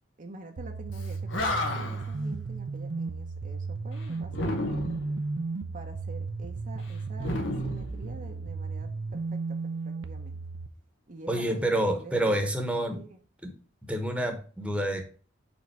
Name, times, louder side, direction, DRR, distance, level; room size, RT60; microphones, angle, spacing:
voice 1, 0.2-4.9 5.7-10.4 11.1-12.4 12.9-13.2, right 2 dB, 45° right, 4 dB, 0.8 m, -46 dB
sound 1, 0.6-10.7, right 3 dB, 80° right, 0.6 m, -34 dB
Animal, 1.0-1.1 1.3-2.1 4.3-5.2 7.2-8.5, left 2 dB, 90° left, 1.2 m, -32 dB
voice 2, 11.3-13.0 13.4-13.5 13.9-15.0, right 1 dB, 5° right, 4 dB, 1.1 m, -28 dB
5.2 x 4.0 x 6.0 m, 0.38 s
head